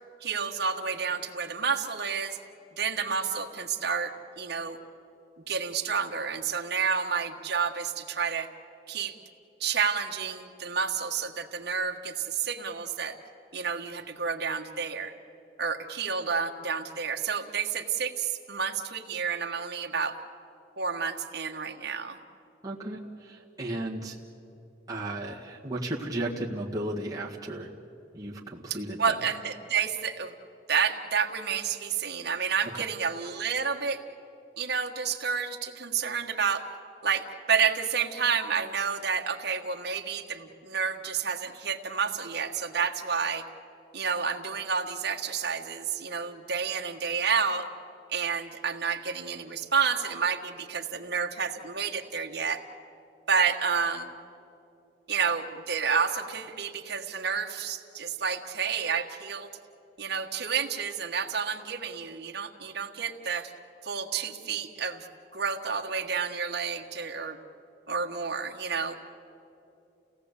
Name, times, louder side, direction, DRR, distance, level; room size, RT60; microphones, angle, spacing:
voice 1, 0.2-2.4 2.8-4.8 5.5-8.5 8.9-9.1 9.6-13.2 13.5-15.1 15.6-20.2 20.8-22.2 29.0-30.3 30.7-34.0 34.6-36.6 37.0-43.4 43.9-47.7 48.1-52.6 53.3-54.1 55.1-59.5 60.0-63.5 63.8-65.0 65.3-67.4 67.9-69.0, right 6 dB, 55° right, 3 dB, 1.5 m, -30 dB
voice 2, 22.6-24.2 24.9-27.7 28.1-29.2, right 1 dB, 20° right, -4 dB, 1.7 m, -34 dB
29.0 x 17.5 x 8.3 m, 2.7 s
head